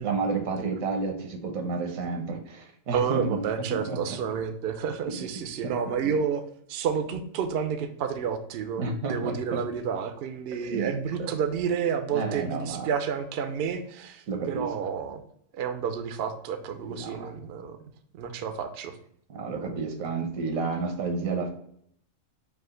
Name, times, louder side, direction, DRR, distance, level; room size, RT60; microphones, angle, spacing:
voice 1, 0.0-3.4 3.7-4.0 5.6-5.7 6.0-6.1 8.8-9.6 10.6-10.9 12.1-12.9 14.3-14.7 16.8-17.3 19.3-21.5, right 4 dB, 80° right, 3 dB, 1.3 m, -31 dB
voice 2, 2.9-6.4 6.7-15.2 15.5-17.8 18.1-19.0, right 7 dB, 65° right, 8 dB, 0.6 m, -30 dB
4.8 x 2.4 x 3.7 m, 0.68 s
omnidirectional pair, 1.4 m